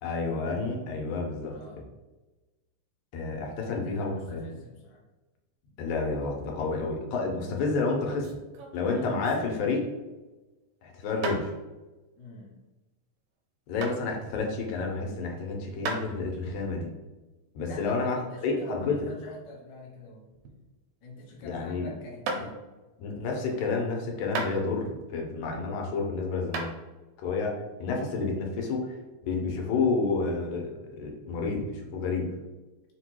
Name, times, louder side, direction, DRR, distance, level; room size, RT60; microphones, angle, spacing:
voice 1, 0.0-1.6 3.1-4.4 5.8-8.4 8.7-9.9 10.8-11.5 13.7-16.9 17.6-18.2 18.4-19.0 21.4-21.9 23.0-26.7 27.2-32.3, left 4 dB, 85° left, 0 dB, 2.2 m, -30 dB
voice 2, 1.5-1.8 3.7-5.0 12.2-12.6 17.6-20.2 21.0-22.6, left 2 dB, 55° left, -4 dB, 1.2 m, -45 dB
sound 1, 7.8-9.9 11.2-11.4 13.8-14.0 15.8-16.1 19.3-20.7 21.0-21.4 22.3-22.5 24.3-25.0 25.5-26.0 26.5-26.7, right 3 dB, 75° right, 1.3 m, -35 dB
4.8 x 2.2 x 4.5 m, 1.1 s
omnidirectional pair, 3.3 m